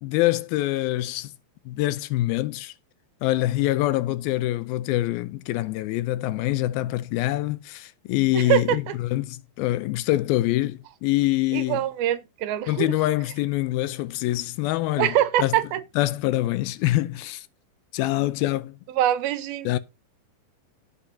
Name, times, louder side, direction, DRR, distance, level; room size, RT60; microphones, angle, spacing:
voice 1, 0.0-1.3 1.7-2.7 3.2-11.8 12.7-15.5 16.0-17.5 17.9-18.8 19.7-19.8, left 16 dB, 85° left, 2.5 m, -25 dB
voice 2, 8.3-8.9 11.5-12.9 15.0-15.8 19.0-19.7, right 12 dB, 90° right, 2.8 m, -24 dB
16.5 x 6.7 x 2.8 m
omnidirectional pair, 4.3 m